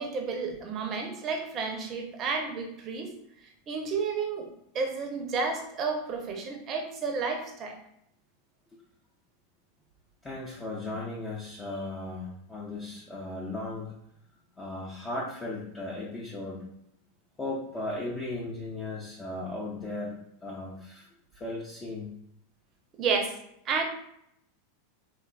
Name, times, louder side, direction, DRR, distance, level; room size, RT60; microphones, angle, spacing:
voice 1, 0.0-3.1 3.7-4.5 4.7-7.8 23.0-23.3 23.7-23.8, right 4 dB, 40° right, 3 dB, 0.6 m, -31 dB
voice 2, 10.2-13.9 14.6-16.6 17.4-21.1 21.3-22.2, left 2 dB, 20° left, -5 dB, 0.5 m, -36 dB
2.9 x 2.3 x 2.2 m, 0.75 s
hypercardioid pair, 100°, 0 cm